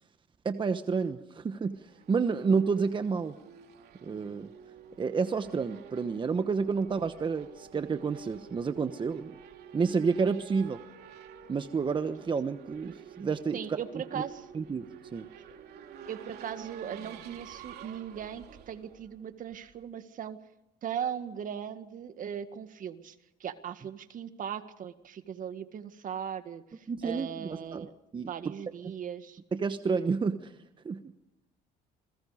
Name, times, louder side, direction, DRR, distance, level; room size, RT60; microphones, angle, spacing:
voice 1, 0.4-3.3 4.0-4.5 5.0-9.3 9.7-10.8 11.5-13.8 14.1-14.2 14.5-14.8 15.1-15.3 26.9-27.9 28.1-28.3 29.5-30.5 30.8-31.1, right 5 dB, 30° right, 9 dB, 1.1 m, -30 dB
Race car auto racing / Accelerating revving vroom, 1.6-19.8, right 7 dB, 70° right, 3.0 m, -50 dB
voice 2, 13.5-14.5 16.1-20.4 20.8-23.2 23.4-27.9 28.3-29.4, right 8 dB, 50° right, 9 dB, 1.9 m, -38 dB
28.5 x 21.5 x 5.1 m, 0.92 s
cardioid pair, 110°, 17 cm